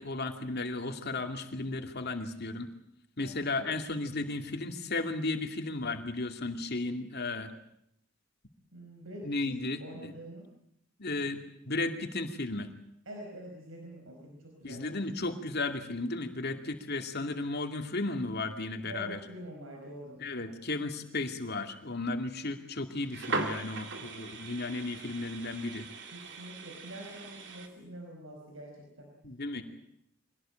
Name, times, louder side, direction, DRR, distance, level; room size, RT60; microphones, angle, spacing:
voice 1, 0.0-2.7 3.2-7.5 9.2-10.1 11.0-11.4 11.7-12.7 14.6-19.2 20.2-25.9 29.2-29.6, left 2 dB, 55° left, 5 dB, 2.5 m, -34 dB
voice 2, 3.2-3.7 8.7-10.5 13.0-15.0 18.8-20.6 26.1-29.1, right 1 dB, 90° right, 1 dB, 4.9 m, -46 dB
sound 1, 23.0-27.7, right 3 dB, 60° right, 2.6 m, -39 dB
24.5 x 18.0 x 9.0 m, 0.77 s
head